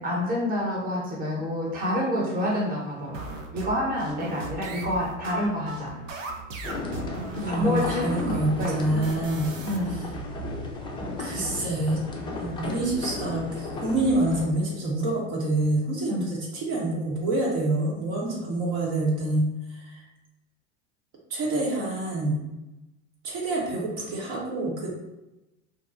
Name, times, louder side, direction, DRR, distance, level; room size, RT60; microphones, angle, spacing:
voice 1, 0.0-6.0 7.4-9.0 9.6-10.0 16.1-16.3, left 1 dB, 25° right, -3 dB, 0.9 m, -28 dB
sound 1, 3.1-9.8, right 2 dB, 85° right, 0.6 m, -38 dB
sound 2, 6.6-14.4, left 2 dB, 15° left, 0.3 m, -35 dB
voice 2, 7.4-9.5 9.9-10.1 11.2-12.0 12.3-20.0 21.3-22.5 23.2-24.9, right 2 dB, 65° right, -3 dB, 1.0 m, -27 dB
2.7 x 2.2 x 2.4 m, 0.99 s
hypercardioid pair, 90°, 37 cm